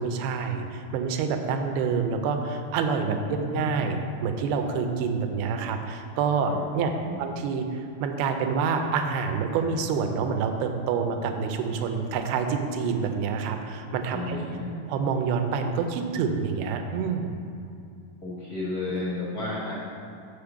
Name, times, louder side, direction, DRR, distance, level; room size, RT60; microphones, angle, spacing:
voice 1, 0.0-6.9 7.2-14.4 14.9-17.3, right 5 dB, 85° right, 5 dB, 2.5 m, -27 dB
voice 2, 3.1-4.0 6.5-7.2 14.1-14.9 18.2-19.8, left 2 dB, 80° left, -8 dB, 0.8 m, -33 dB
6.5 x 5.1 x 7.0 m, 2.6 s
omnidirectional pair, 4.3 m